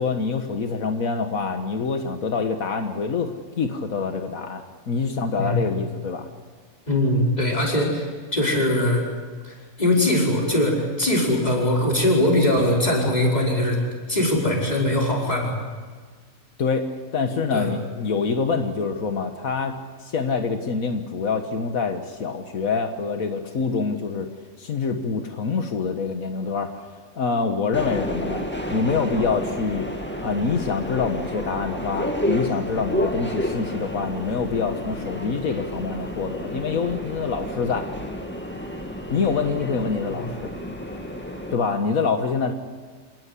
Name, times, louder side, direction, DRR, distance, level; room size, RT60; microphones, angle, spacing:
voice 1, 0.0-6.3 16.6-24.3 24.6-26.8 27.2-28.4 28.7-29.9 30.2-37.9 39.1-40.5 41.5-42.5, left 5 dB, 85° left, 5 dB, 1.8 m, -26 dB
voice 2, 6.9-9.0 9.4-13.8 14.1-15.5 17.5-17.7 40.1-40.3, left 1 dB, 30° left, -2 dB, 5.3 m, -21 dB
Subway metro underground, 27.7-41.6, left 1 dB, 10° left, 2.0 m, -30 dB
27.5 x 18.5 x 8.4 m, 1.5 s
omnidirectional pair, 1.4 m